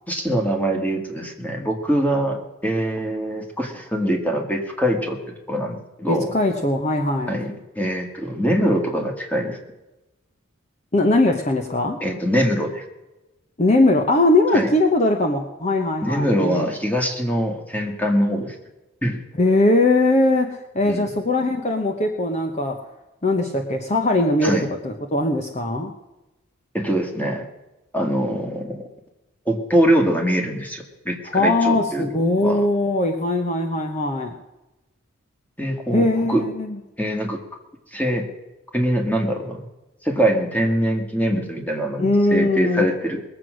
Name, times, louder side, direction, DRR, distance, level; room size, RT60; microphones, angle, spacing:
voice 1, 0.1-5.2 5.5-6.3 7.3-9.6 12.0-12.8 14.5-14.7 16.0-18.6 19.0-19.2 20.8-21.1 24.4-24.6 26.7-27.5 27.9-28.9 29.5-32.1 32.4-32.6 35.6-36.4 37.0-37.4 37.9-38.2 38.7-39.6 40.0-43.2, equal, 10° left, 2 dB, 1.8 m, -23 dB
voice 2, 6.0-7.4 10.9-12.0 13.6-16.7 19.4-22.8 23.2-25.9 31.3-34.3 35.9-36.8 42.0-42.9, left 2 dB, 35° left, 3 dB, 0.9 m, -20 dB
21.0 x 7.9 x 6.3 m, 1.0 s
head